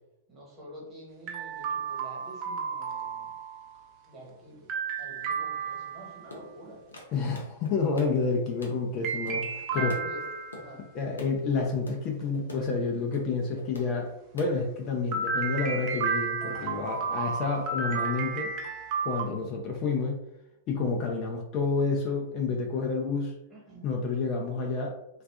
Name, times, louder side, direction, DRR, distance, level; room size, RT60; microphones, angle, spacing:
voice 1, 0.3-3.3 4.1-4.7 5.0-6.9 7.7-8.1 9.7-10.2 10.5-10.8 22.8-23.2 23.5-23.9, equal, 25° right, -4 dB, 1.2 m, -47 dB
sound 1, 1.3-3.7 4.7-6.3 9.0-10.7 15.1-19.2, right 5 dB, 40° right, 0.6 m, -32 dB
sound 2, 6.3-11.6 11.9-12.1 12.3-14.1 14.4-14.9, left 1 dB, 90° left, 0.6 m, -44 dB
voice 2, 7.1-9.9 10.9-18.5 19.0-20.2 20.7-23.4 23.8-24.9, left 4 dB, 40° left, 1 dB, 0.4 m, -29 dB
2.5 x 2.3 x 2.3 m, 0.87 s
hypercardioid pair, 110°, 0 cm